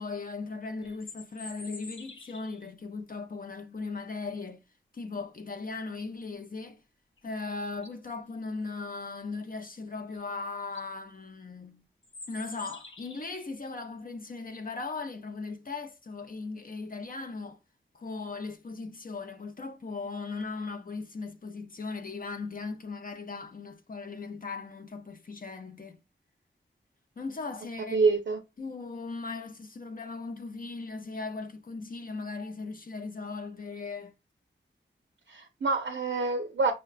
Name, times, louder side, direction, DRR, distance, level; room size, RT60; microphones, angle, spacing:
voice 1, 0.0-4.6 4.9-6.8 7.2-11.9 12.3-17.6 17.9-26.0 27.2-28.0 28.6-34.1, left 3 dB, 45° left, 0.5 m, -38 dB
sound 1, 0.8-2.7 7.2-7.3 7.7-8.1 10.1-10.2 10.6-10.9 12.0-13.4, left 3 dB, 80° left, 0.8 m, -47 dB
voice 2, 27.9-28.4 35.3-36.7, right 4 dB, 65° right, 0.5 m, -26 dB
5.6 x 2.1 x 2.4 m
wide cardioid pair, 80°, 20 cm